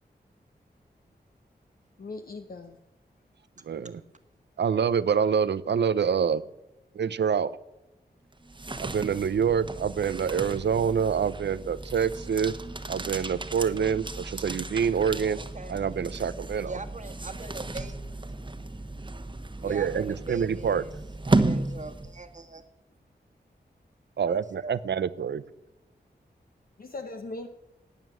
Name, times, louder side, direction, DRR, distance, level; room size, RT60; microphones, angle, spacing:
voice 1, 2.0-2.8 26.8-27.5, left 3 dB, 55° left, 1.0 m, -39 dB
voice 2, 3.7-4.0 4.6-6.4 7.0-7.6 8.8-12.5 12.9-15.4 15.7-16.7 19.6-20.8 24.2-25.4, right 7 dB, 85° right, 0.7 m, -26 dB
sound 1, 8.3-22.4, right 2 dB, 30° right, 1.2 m, -33 dB
voice 3, 15.1-15.9 16.6-17.9 19.6-20.9 21.2-22.6 24.3-24.7, right 3 dB, 45° right, 1.5 m, -41 dB
12.0 x 9.1 x 9.2 m
wide cardioid pair, 85°, 18 cm